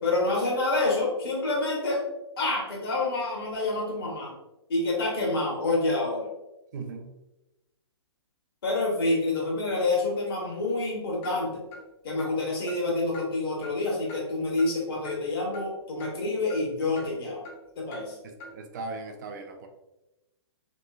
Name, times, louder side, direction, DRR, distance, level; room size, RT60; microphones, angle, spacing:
voice 1, 0.0-2.0 2.4-4.3 4.7-6.3 8.6-11.5 12.0-17.4 17.8-18.2, left 2 dB, 55° left, -2 dB, 1.2 m, -27 dB
voice 2, 6.7-7.1 18.2-19.7, right 3 dB, 40° right, 5 dB, 0.4 m, -38 dB
Clock, 11.2-11.3 11.7-11.8 12.2-12.3 12.7-12.8 13.1-13.3 13.6-13.7 14.1-14.2 14.6-14.7 15.0-15.2 15.5-15.6 16.0-16.1 16.5-16.6 17.0-17.1 17.4-17.6 17.9-18.0 18.4-18.5, left 2 dB, 30° left, 0.8 m, -42 dB
3.0 x 2.9 x 2.4 m, 0.98 s
figure-of-eight pair, 120°, 15 cm